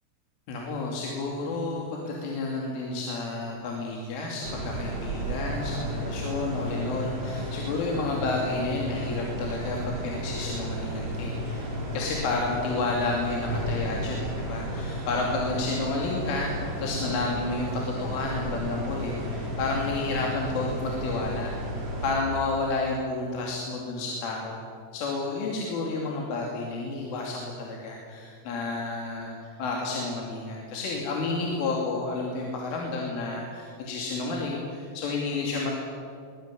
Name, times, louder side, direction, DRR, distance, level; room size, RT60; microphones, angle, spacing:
voice 1, 0.5-21.5 22.0-24.6 24.9-35.7, left 3 dB, 75° left, -1 dB, 5.2 m, -31 dB
sound 1, 4.4-22.1, equal, 80° right, 8.4 m, -33 dB
23.5 x 19.5 x 10.0 m, 2.3 s
omnidirectional pair, 5.8 m